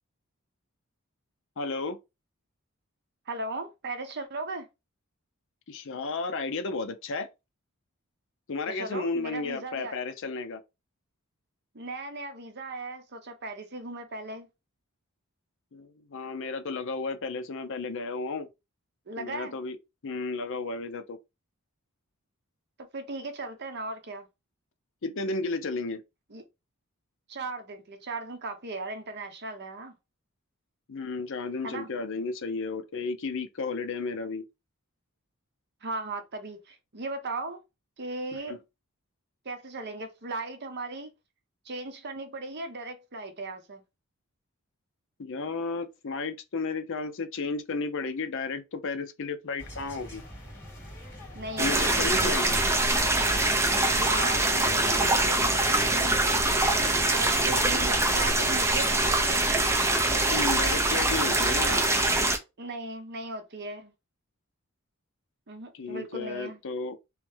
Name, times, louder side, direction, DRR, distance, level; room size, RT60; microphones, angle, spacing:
voice 1, 1.6-2.0 5.7-7.3 8.5-10.6 15.7-18.5 19.2-19.8 20.0-21.2 25.0-26.0 30.9-34.4 38.5-38.6 45.2-50.2 51.6-52.5 60.3-61.8 65.7-67.0, left 3 dB, 60° left, 0.6 m, -33 dB
voice 2, 3.3-4.7 8.7-10.0 11.7-14.5 19.1-19.5 22.9-24.3 26.3-26.4 27.3-29.9 31.6-31.9 35.8-37.6 38.0-38.6 39.4-41.1 41.6-43.8 51.3-51.9 53.9-56.1 57.1-59.4 61.4-61.8 62.6-63.9 65.5-66.6, right 2 dB, 50° right, 0.8 m, -37 dB
sound 1, 49.6-58.6, equal, 15° left, 2.6 m, -43 dB
sound 2, 51.6-62.4, right 2 dB, 10° right, 0.6 m, -24 dB
3.2 x 3.1 x 3.3 m
head